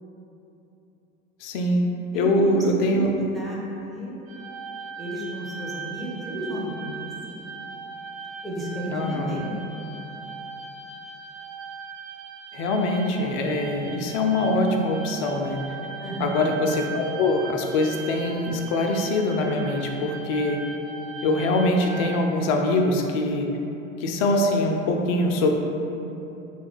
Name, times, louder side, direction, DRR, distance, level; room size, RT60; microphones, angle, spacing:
voice 1, 1.4-1.8 2.1-3.1 8.9-9.4 12.5-15.6 16.2-20.6 21.2-23.5 24.0-25.5, left 2 dB, 50° left, 2 dB, 0.5 m, -23 dB
voice 2, 2.1-3.1 3.3-4.2 5.0-7.5 8.4-9.5 16.0-16.5, equal, ahead, -6 dB, 0.6 m, -33 dB
sound 1, 4.3-22.2, right 5 dB, 50° right, 0.7 m, -39 dB
3.2 x 2.3 x 3.5 m, 3.0 s
figure-of-eight pair, 75°, 39 cm